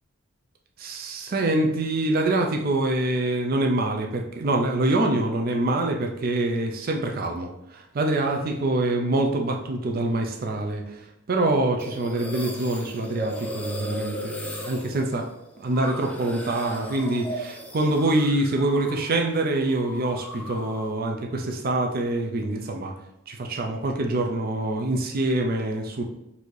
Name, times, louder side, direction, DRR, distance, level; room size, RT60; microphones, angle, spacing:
voice 1, 0.8-10.8 11.3-15.2 15.6-22.9 23.3-26.0, right 2 dB, 50° right, 2 dB, 0.5 m, -25 dB
sound 1, 11.8-19.2 19.5-21.0, equal, 10° left, 0.6 m, -37 dB
4.1 x 2.6 x 4.6 m, 0.84 s
head